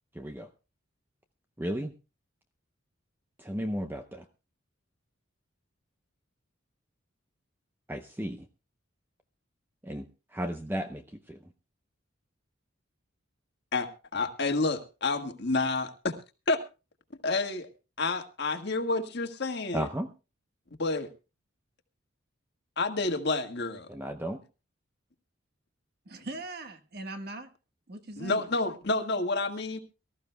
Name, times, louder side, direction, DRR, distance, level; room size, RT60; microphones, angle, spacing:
voice 1, 0.1-0.5 1.6-1.9 3.4-4.3 7.9-8.5 9.8-11.4 19.7-20.1 23.9-24.4, equal, 10° right, 0.7 m, -34 dB
voice 2, 13.7-16.2 16.5-16.6 17.2-17.7 18.0-19.9 20.8-21.1 22.8-23.9 28.2-29.8, left 3 dB, 55° left, 1.6 m, -29 dB
voice 3, 26.0-27.5 27.9-28.4, right 2 dB, 50° right, 1.4 m, -40 dB
24.0 x 14.0 x 2.2 m
head